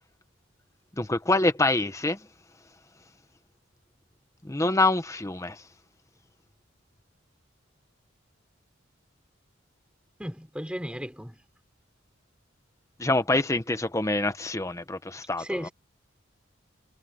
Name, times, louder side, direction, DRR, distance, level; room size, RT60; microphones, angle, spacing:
voice 1, 1.0-2.3 4.4-5.7 13.0-15.7, left 2 dB, 15° left, 0.8 m, -26 dB
voice 2, 10.2-11.4 15.4-15.7, equal, 5° right, 4.8 m, -34 dB
head